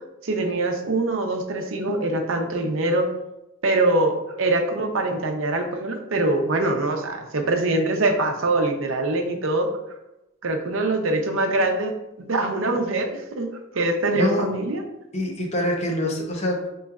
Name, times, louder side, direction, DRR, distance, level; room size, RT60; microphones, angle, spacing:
voice 1, 0.2-3.1 3.6-9.7 10.4-13.5 13.7-14.8, right 2 dB, 70° right, 3 dB, 0.7 m, -23 dB
voice 2, 15.1-16.7, left 1 dB, 30° left, 1 dB, 0.8 m, -25 dB
6.6 x 3.1 x 2.4 m, 0.92 s
head